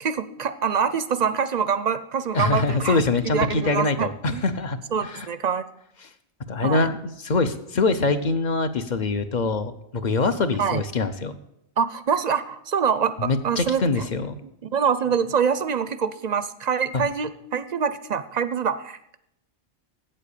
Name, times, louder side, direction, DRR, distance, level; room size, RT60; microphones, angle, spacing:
voice 1, 0.0-3.0 3.2-4.4 4.9-5.6 6.6-6.9 10.6-10.8 11.8-14.0 14.7-19.2, right 6 dB, 50° right, 13 dB, 0.5 m, -25 dB
voice 2, 2.3-5.3 6.5-11.3 13.2-14.4, left 3 dB, 45° left, 9 dB, 0.8 m, -24 dB
8.5 x 7.7 x 8.3 m, 0.79 s
omnidirectional pair, 1.1 m